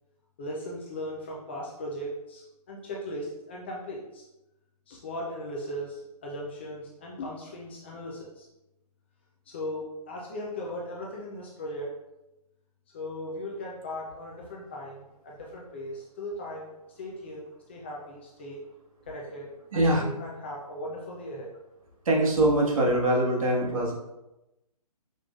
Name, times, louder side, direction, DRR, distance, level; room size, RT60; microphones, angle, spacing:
voice 1, 0.4-4.2 4.9-8.5 9.5-11.9 12.9-16.7 17.0-18.6 19.1-21.5, left 1 dB, 20° left, -3 dB, 0.4 m, -38 dB
voice 2, 19.7-20.0 22.0-23.9, right 1 dB, 55° right, -2 dB, 1.4 m, -23 dB
5.1 x 3.7 x 2.3 m, 0.95 s
figure-of-eight pair, 145°, 20 cm